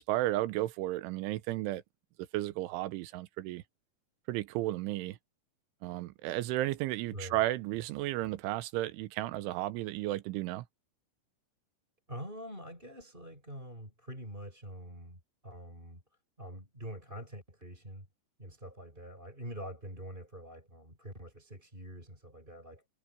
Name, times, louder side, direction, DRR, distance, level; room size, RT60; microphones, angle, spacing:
voice 1, 0.0-1.8 2.3-3.6 4.3-5.2 5.8-10.6, right 16 dB, 80° right, 3.3 m, -33 dB
voice 2, 7.1-7.4 12.1-16.0 16.4-18.1 18.4-22.9, equal, 10° right, 7.3 m, -45 dB
omnidirectional pair, 5.7 m